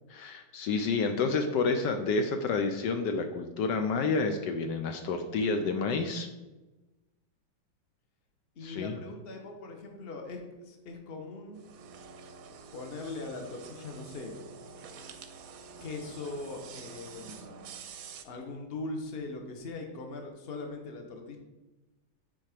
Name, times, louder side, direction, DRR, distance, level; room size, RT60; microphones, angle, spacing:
voice 1, 0.1-6.3 8.6-8.9, left 4 dB, 75° left, 6 dB, 1.3 m, -29 dB
voice 2, 8.5-11.6 12.7-14.4 15.8-17.7 18.2-21.4, left 3 dB, 35° left, 3 dB, 1.1 m, -40 dB
sound 1, 11.5-18.2, right 5 dB, 65° right, 0.9 m, -47 dB
9.6 x 4.4 x 5.0 m, 1.1 s
omnidirectional pair, 2.0 m